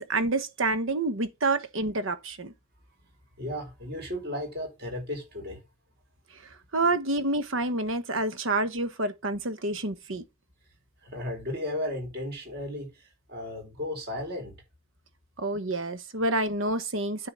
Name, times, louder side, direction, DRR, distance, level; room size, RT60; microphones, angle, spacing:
voice 1, 0.0-2.5 6.7-10.2 15.4-17.3, right 2 dB, 80° right, 1.2 m, -28 dB
voice 2, 3.4-5.6 11.0-14.5, left 1 dB, 55° right, 4.4 m, -35 dB
9.6 x 3.9 x 7.0 m
head